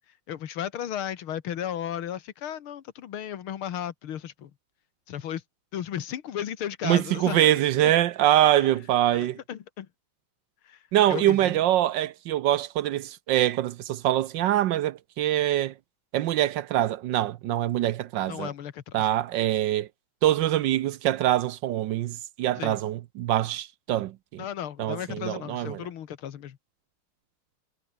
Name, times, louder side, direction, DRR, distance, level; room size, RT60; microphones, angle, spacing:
voice 1, 0.3-4.5 5.1-5.4 5.7-7.9 8.4-8.7 9.1-9.9 10.7-10.8 11.1-11.5 18.3-19.1 22.6-22.8 24.4-26.6, left 10 dB, 85° left, 2.2 m, -35 dB
voice 2, 6.8-9.4 10.9-15.7 16.1-18.5 18.9-19.9 20.2-24.4 24.8-25.9, right 13 dB, 70° right, 1.2 m, -24 dB
omnidirectional pair, 2.3 m